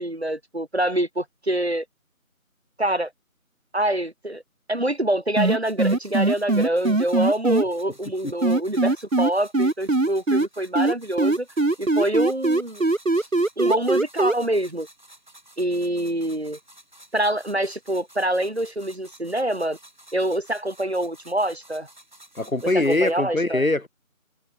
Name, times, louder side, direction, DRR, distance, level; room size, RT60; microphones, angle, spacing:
voice 1, 0.0-1.8 2.8-3.1 3.7-4.4 4.7-11.5 11.8-12.9 13.2-13.3 13.6-14.9 15.6-16.6 17.1-19.8 20.1-21.9 22.7-23.6, right 1 dB, 50° right, 1.3 m, -25 dB
sound 1, 5.4-7.6 8.4-10.5 10.8-14.3, right 2 dB, 65° right, 1.7 m, -20 dB
sound 2, 5.6-23.1, right 1 dB, 35° right, 7.6 m, -51 dB
voice 2, 22.4-23.9, left 2 dB, 70° left, 2.7 m, -22 dB
figure-of-eight pair, 180°, 42 cm